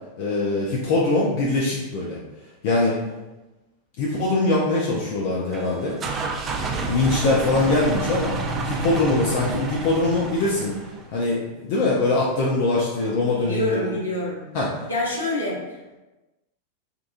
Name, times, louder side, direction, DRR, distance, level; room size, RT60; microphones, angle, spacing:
voice 1, 0.2-2.2 2.6-3.0 4.0-6.0 6.9-8.3 8.6-10.7 11.1-13.9 14.5-14.7, left 2 dB, 50° left, -5 dB, 0.5 m, -22 dB
sound 1, 5.5-11.1, right 3 dB, 25° right, 0.3 m, -29 dB
voice 2, 13.4-14.4 14.9-16.0, left 1 dB, 75° left, -5 dB, 0.9 m, -27 dB
3.8 x 2.4 x 2.4 m, 1.1 s
figure-of-eight pair, 90°, 0 cm